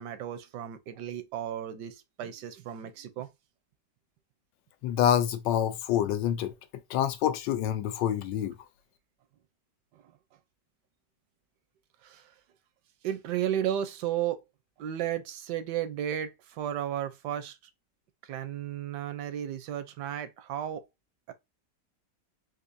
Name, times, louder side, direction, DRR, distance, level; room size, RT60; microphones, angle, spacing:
voice 1, 0.0-3.3 9.9-10.1 12.0-12.3 13.0-14.4 14.8-17.6 18.2-20.8 21.3-21.4, right 10 dB, 80° right, 1.2 m, -34 dB
voice 2, 4.8-6.5 6.9-8.5, left 10 dB, 85° left, 1.2 m, -27 dB
4.3 x 2.6 x 2.5 m
omnidirectional pair, 1.9 m